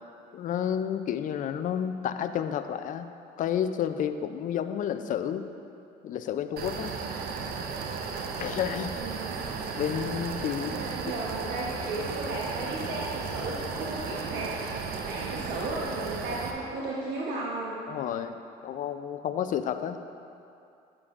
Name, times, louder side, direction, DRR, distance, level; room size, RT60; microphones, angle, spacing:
voice 1, 0.3-3.1 3.4-5.5 6.0-6.9 8.4-8.9 9.8-10.8 17.9-20.0, left 9 dB, 50° left, 9 dB, 0.4 m, -30 dB
sound 1, 6.6-16.5, right 5 dB, 65° right, 0.7 m, -35 dB
voice 2, 8.8-9.4 10.7-14.7 15.0-17.8, right 2 dB, 80° right, -5 dB, 1.0 m, -35 dB
9.6 x 7.3 x 2.5 m, 2.7 s
cardioid pair, 110°, 17 cm